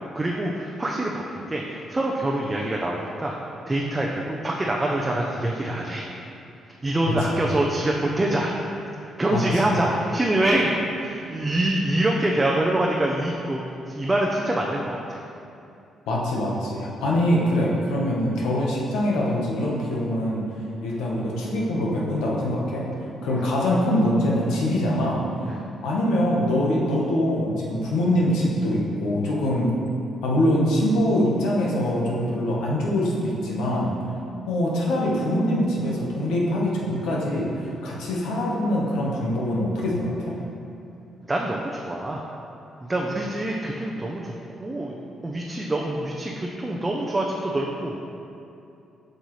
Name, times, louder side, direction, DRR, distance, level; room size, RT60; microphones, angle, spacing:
voice 1, 0.0-3.3 3.7-6.2 6.7-8.5 8.9-15.2 23.3-23.5 25.4-25.7 41.3-42.2 42.8-44.3 44.6-44.9 45.2-48.1, right 1 dB, 20° right, -2 dB, 0.6 m, -25 dB
voice 2, 7.1-7.4 9.3-9.6 16.1-20.4 20.8-22.9 23.2-25.2 25.8-29.7 30.2-33.9 34.5-40.4, left 1 dB, 90° left, -3 dB, 1.2 m, -23 dB
7.8 x 5.4 x 3.2 m, 2.7 s
cardioid pair, 90°, 0 cm